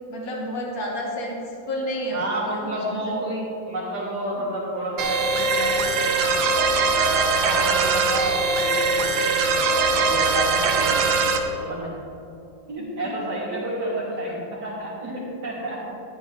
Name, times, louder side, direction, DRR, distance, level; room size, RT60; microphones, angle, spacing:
voice 1, 0.1-1.4 1.7-3.5 12.8-13.1, equal, 50° left, -2 dB, 2.3 m, -31 dB
voice 2, 2.1-3.3 3.7-6.3 6.9-11.0 11.6-11.9 12.7-15.8, right 1 dB, 55° right, -7 dB, 3.6 m, -30 dB
sound 1, 5.0-11.4, right 4 dB, 75° right, 1.6 m, -21 dB
14.0 x 11.0 x 3.4 m, 2.9 s
omnidirectional pair, 2.1 m